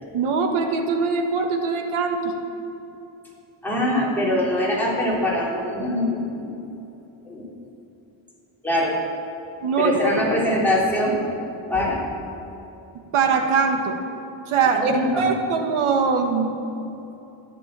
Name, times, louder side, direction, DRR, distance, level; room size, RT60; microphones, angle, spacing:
voice 1, 0.1-2.3 9.6-10.2 13.1-14.0 14.5-16.5, right 5 dB, 80° right, 4 dB, 1.6 m, -22 dB
voice 2, 3.6-6.5 7.3-7.4 8.6-9.0 9.8-11.2 11.7-12.1 14.6-15.3, left 1 dB, 5° left, -6 dB, 3.6 m, -23 dB
13.5 x 12.0 x 7.5 m, 2.9 s
wide cardioid pair, 165°, 49 cm